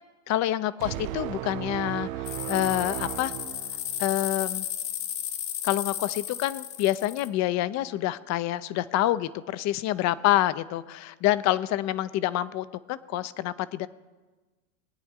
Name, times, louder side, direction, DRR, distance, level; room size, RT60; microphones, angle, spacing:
voice 1, 0.3-3.3 4.0-4.6 5.6-13.9, left 14 dB, 40° left, 15 dB, 0.6 m, -27 dB
sound 1, 0.8-4.3, right 14 dB, 80° right, 0.7 m, -35 dB
sound 2, 2.2-7.3, left 11 dB, 60° left, 1.3 m, -34 dB
21.5 x 9.2 x 3.7 m, 1.3 s
supercardioid pair, 125°, 41 cm